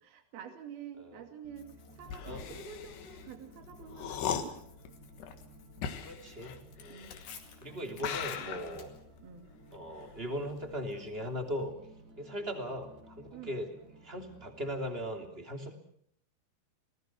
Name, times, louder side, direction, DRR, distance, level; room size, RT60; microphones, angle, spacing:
voice 1, 0.0-4.6 6.9-7.2 7.7-8.0 8.4-8.9 9.2-9.5 13.3-13.6, right 7 dB, 70° right, 5 dB, 4.3 m, -48 dB
sound 1, 1.4-15.3, right 1 dB, 55° right, 6.9 m, -57 dB
Tearing, 1.6-9.8, left 7 dB, 60° left, 3.8 m, -56 dB
sound 2, 2.0-7.5 8.0-10.9 11.2-11.6, left 8 dB, 90° left, 3.8 m, -40 dB
voice 2, 6.0-7.1 7.6-8.9 9.7-11.7 12.2-13.7 14.0-15.8, equal, 15° right, 4 dB, 2.8 m, -39 dB
29.5 x 19.0 x 6.2 m, 0.67 s
omnidirectional pair, 4.5 m